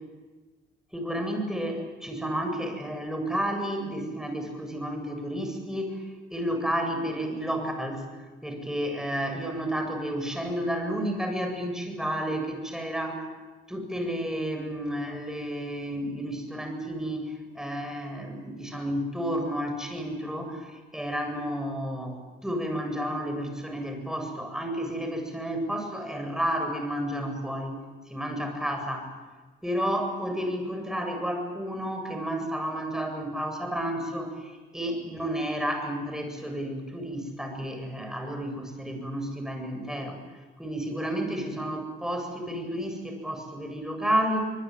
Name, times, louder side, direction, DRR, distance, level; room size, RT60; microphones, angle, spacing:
voice 1, 0.9-6.0 6.3-8.0 8.4-13.3 13.7-27.8 28.1-29.1 29.6-40.2 40.6-44.5, equal, 5° right, 4 dB, 7.9 m, -31 dB
26.0 x 20.5 x 9.4 m, 1.3 s
cardioid pair, 90°, 20 cm